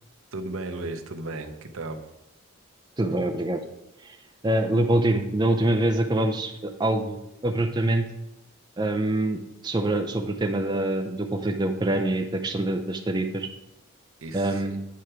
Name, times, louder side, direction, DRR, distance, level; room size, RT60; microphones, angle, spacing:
voice 1, 0.3-2.0 14.2-14.8, right 2 dB, 75° right, 7 dB, 0.7 m, -35 dB
voice 2, 3.0-3.6 4.0-4.2 4.4-8.1 8.8-13.5 14.3-14.8, right 1 dB, 20° right, 5 dB, 0.4 m, -25 dB
8.5 x 4.8 x 4.4 m, 0.87 s
head